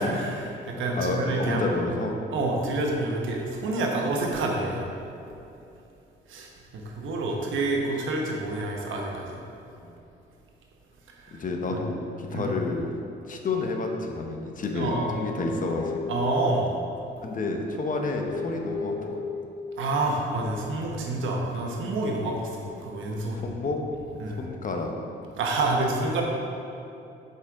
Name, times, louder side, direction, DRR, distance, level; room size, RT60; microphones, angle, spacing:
voice 1, 0.0-1.8 2.3-4.8 6.3-9.4 11.1-11.4 11.7-11.8 12.3-12.6 14.7-15.1 16.1-16.8 19.8-23.5 24.2-24.4 25.4-26.2, right 2 dB, 80° right, 0 dB, 1.2 m, -28 dB
voice 2, 0.9-2.2 11.3-12.9 13.3-16.0 17.2-19.2 23.3-23.8 24.4-24.9, left 3 dB, 40° left, 2 dB, 0.9 m, -29 dB
Guitar, 14.9-17.4 18.1-20.0, left 4 dB, 65° left, 1.0 m, -36 dB
8.1 x 5.5 x 3.7 m, 2.8 s
cardioid pair, 90°, 20 cm